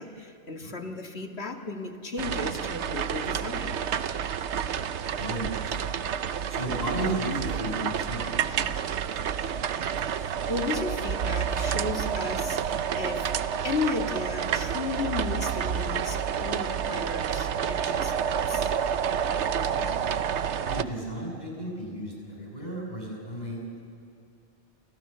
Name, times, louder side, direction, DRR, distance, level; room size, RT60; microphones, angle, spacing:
voice 1, 0.0-3.8 6.6-6.9 10.1-13.3 13.6-18.1 18.5-18.7, left 3 dB, 70° left, 3 dB, 2.4 m, -34 dB
sound 1, 2.2-20.8, right 8 dB, 85° right, 1.1 m, -29 dB
voice 2, 5.2-5.9 6.5-9.1 9.4-9.5 19.5-19.9 20.7-23.8, right 1 dB, 40° left, -2 dB, 7.6 m, -34 dB
28.5 x 28.5 x 7.0 m, 2.7 s
omnidirectional pair, 1.1 m